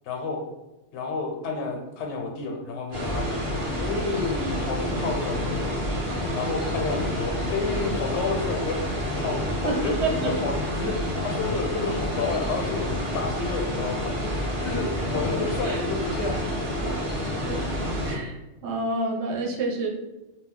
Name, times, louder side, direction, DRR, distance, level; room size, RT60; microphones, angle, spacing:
voice 1, 0.1-0.4 0.9-16.5, left 4 dB, 80° left, 2 dB, 0.9 m, -31 dB
sound 1, 2.9-18.2, equal, 35° right, 0.6 m, -28 dB
voice 2, 9.6-10.6 15.3-15.8 17.4-17.6 18.0-18.3 18.6-19.9, right 2 dB, 75° right, 1 dB, 0.9 m, -29 dB
2.3 x 2.0 x 3.6 m, 0.97 s
omnidirectional pair, 1.2 m